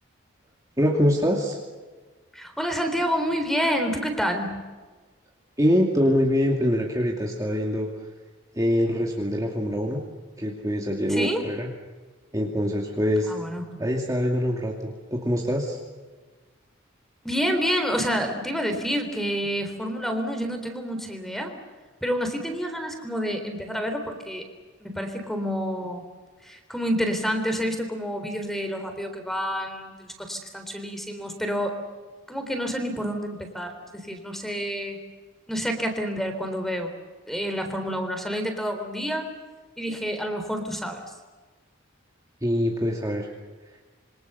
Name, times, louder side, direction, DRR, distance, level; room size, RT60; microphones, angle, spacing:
voice 1, 0.8-1.6 5.6-7.9 8.6-10.0 10.4-11.7 12.3-13.3 13.8-15.8 42.4-43.3, equal, 15° right, -1 dB, 2.4 m, -24 dB
voice 2, 2.3-4.6 11.1-11.4 13.3-13.8 17.2-21.5 22.0-24.5 24.8-26.0 26.4-31.7 32.3-35.0 35.5-36.9 37.3-39.3 39.8-41.0, equal, ahead, 6 dB, 3.7 m, -28 dB
27.0 x 25.0 x 6.9 m, 1.4 s
head